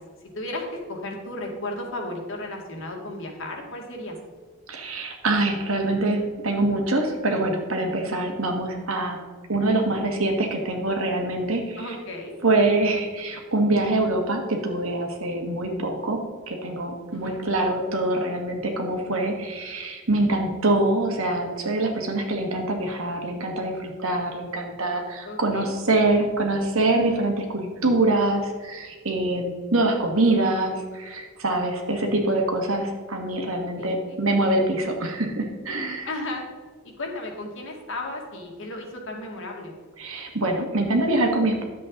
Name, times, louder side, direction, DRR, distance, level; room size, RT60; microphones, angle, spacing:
voice 1, 0.3-4.2 11.8-12.4 17.1-17.4 25.2-26.0 33.8-33.9 36.1-36.4 36.8-39.7, left 1 dB, 65° left, 1 dB, 2.1 m, -34 dB
voice 2, 4.7-9.2 9.5-11.8 12.4-16.2 16.5-36.1 40.0-41.6, right 2 dB, 75° right, 3 dB, 1.7 m, -24 dB
11.0 x 7.6 x 4.0 m, 1.5 s
head